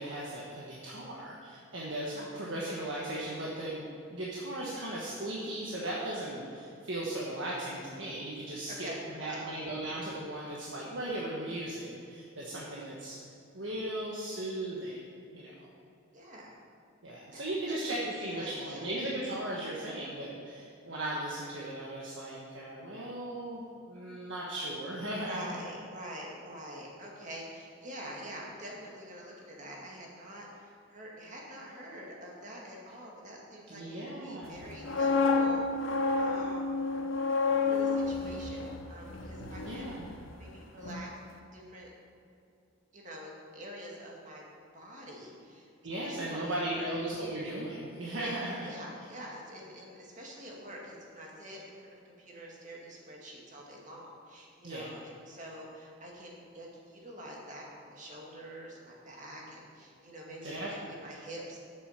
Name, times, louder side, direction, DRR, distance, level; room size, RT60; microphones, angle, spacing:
voice 1, 0.0-3.8 4.1-8.9 9.2-13.2 13.5-15.0 15.3-15.7 17.0-25.6 33.7-34.7 39.6-40.1 45.8-48.7 54.6-54.9 60.2-60.9, right 1 dB, 60° right, -5 dB, 1.4 m, -37 dB
voice 2, 8.7-9.5 16.1-16.6 17.3-17.4 17.7-18.9 25.2-36.8 37.7-40.0 40.4-41.1 41.5-41.9 42.9-44.4 44.7-45.7 46.0-46.9 48.2-61.6, equal, 35° right, -2 dB, 2.1 m, -46 dB
sound 1, 34.6-40.5 40.8-41.1, left 4 dB, 65° left, 1.0 m, -30 dB
11.0 x 8.4 x 5.8 m, 2.6 s
head